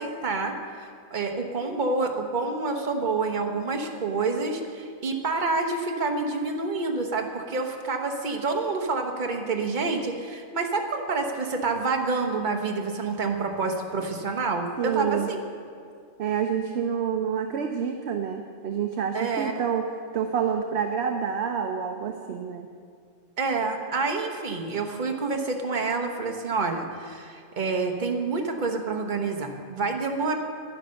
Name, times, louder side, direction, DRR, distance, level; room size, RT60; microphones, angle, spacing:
voice 1, 0.0-15.4 19.1-19.5 23.4-30.3, right 3 dB, 40° right, 3 dB, 1.2 m, -28 dB
voice 2, 14.8-15.3 16.2-19.9 20.1-22.7, right 7 dB, 60° right, 5 dB, 0.9 m, -28 dB
10.5 x 10.0 x 6.4 m, 2.2 s
omnidirectional pair, 1.4 m